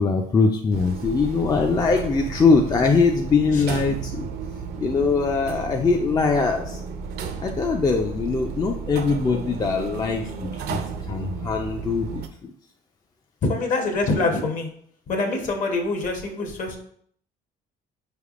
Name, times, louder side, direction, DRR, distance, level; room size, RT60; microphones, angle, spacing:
voice 1, 0.0-4.3 4.8-6.8 7.4-10.8 11.1-12.2, left 4 dB, 25° left, 3 dB, 0.4 m, -22 dB
sound 1, 0.7-12.3, right 5 dB, 75° right, 0.5 m, -33 dB
voice 2, 13.4-14.7 15.1-16.8, left 3 dB, 50° left, 3 dB, 0.9 m, -25 dB
5.0 x 3.4 x 2.4 m, 0.63 s
cardioid pair, 110°, 17 cm